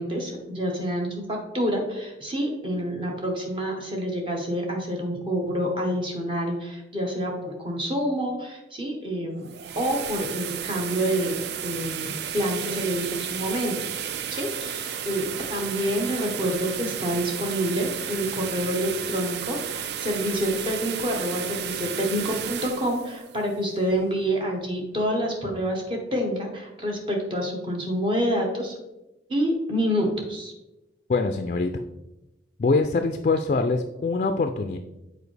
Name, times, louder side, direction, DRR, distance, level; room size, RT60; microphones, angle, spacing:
voice 1, 0.0-13.8 14.3-28.8 29.3-30.5, equal, 30° right, 1 dB, 1.2 m, -27 dB
sound 1, 9.3-24.2, right 9 dB, 60° right, 0.3 m, -33 dB
voice 2, 31.1-31.8 32.6-34.8, left 3 dB, 40° left, 7 dB, 0.3 m, -24 dB
7.0 x 4.4 x 3.3 m, 0.98 s
head